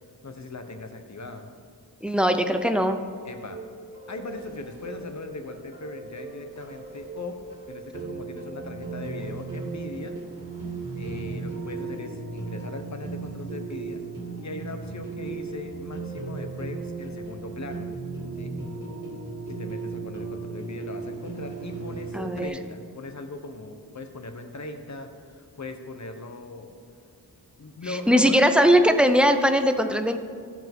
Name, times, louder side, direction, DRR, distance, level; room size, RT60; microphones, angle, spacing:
voice 1, 0.2-1.5 3.2-3.6 4.1-7.4 7.7-10.2 10.9-14.0 14.4-17.9 18.4-18.5 19.5-26.7 27.6-28.4, left 2 dB, 45° left, 6 dB, 1.0 m, -39 dB
voice 2, 2.0-3.0 22.1-22.5 27.9-30.2, equal, 5° right, 7 dB, 0.6 m, -20 dB
sound 1, 3.5-22.5, right 4 dB, 55° right, 2.2 m, -36 dB
15.0 x 5.8 x 3.6 m, 2.3 s
wide cardioid pair, 75°, 39 cm